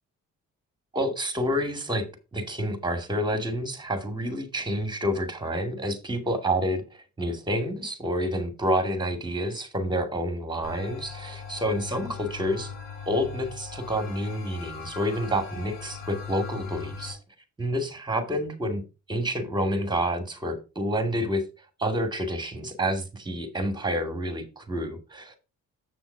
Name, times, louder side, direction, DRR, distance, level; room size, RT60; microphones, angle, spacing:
voice 1, 0.9-2.1 2.3-12.7 13.1-17.2 17.6-18.8 19.1-21.5 21.8-25.4, equal, 15° right, 7 dB, 2.4 m, -28 dB
sound 1, 10.6-17.1, left 6 dB, 85° left, 5.6 m, -40 dB
7.5 x 6.0 x 4.6 m, 0.30 s
cardioid pair, 90°, 30 cm